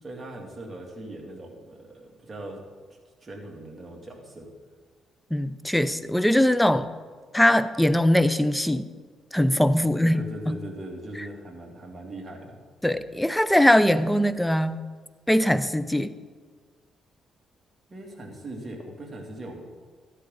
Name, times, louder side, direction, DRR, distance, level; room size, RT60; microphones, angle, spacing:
voice 1, 0.0-2.6 2.9-4.5 9.8-12.5 17.9-19.6, right 1 dB, 25° right, -1 dB, 2.8 m, -40 dB
voice 2, 5.3-6.9 7.3-8.8 9.3-10.6 12.8-14.8 15.3-16.1, left 1 dB, 5° left, 13 dB, 0.6 m, -21 dB
13.0 x 11.5 x 4.0 m, 1.5 s
cardioid pair, 90°, 0 cm